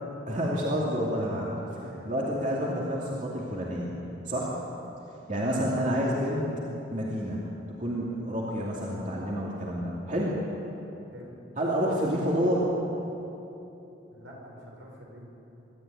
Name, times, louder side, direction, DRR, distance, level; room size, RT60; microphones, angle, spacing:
voice 1, 0.3-1.6 2.0-4.0 4.3-4.6 5.3-6.4 6.9-7.5 7.8-10.4 11.6-12.7, equal, 40° right, -5 dB, 2.9 m, -29 dB
voice 2, 1.6-2.1 5.3-5.7 11.1-11.4 14.1-15.2, equal, 75° right, -1 dB, 5.7 m, -47 dB
24.0 x 13.5 x 9.5 m, 3.0 s
head